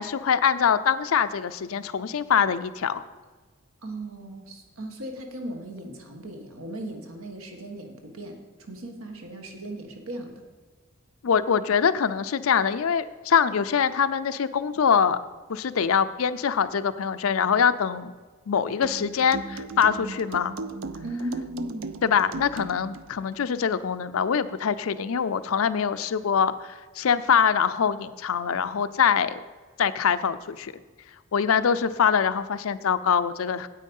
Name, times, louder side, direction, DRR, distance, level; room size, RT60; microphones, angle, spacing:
voice 1, 0.0-3.0 11.2-15.2 15.5-18.1 18.5-20.5 22.0-29.4 29.8-30.7 31.3-33.7, left 7 dB, 85° left, 12 dB, 0.5 m, -24 dB
voice 2, 3.8-10.4 21.0-22.0, right 1 dB, 85° right, 4 dB, 1.6 m, -37 dB
sound 1, 18.8-23.1, right 3 dB, 65° right, 0.5 m, -37 dB
9.2 x 8.4 x 5.4 m, 1.4 s
head